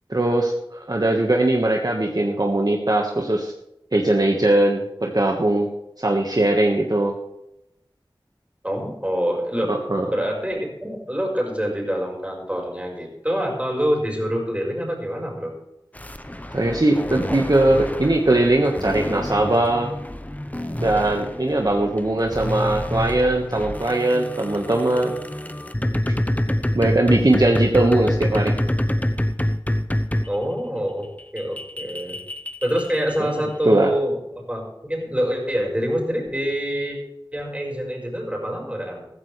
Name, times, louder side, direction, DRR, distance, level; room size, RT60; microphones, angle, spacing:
voice 1, 0.1-3.5 3.9-5.7 6.0-7.1 9.7-10.1 16.5-19.9 20.8-25.2 26.7-28.5 33.2-33.4 33.6-33.9, right 1 dB, 50° right, 1 dB, 1.5 m, -20 dB
voice 2, 8.6-9.7 10.1-15.6 30.3-32.2 32.6-37.0 37.3-39.1, equal, 15° right, -1 dB, 5.0 m, -26 dB
sound 1, 15.9-30.4 31.0-33.4, left 1 dB, 15° left, 0.9 m, -27 dB
14.5 x 14.5 x 3.3 m, 0.87 s
wide cardioid pair, 45°, 9 cm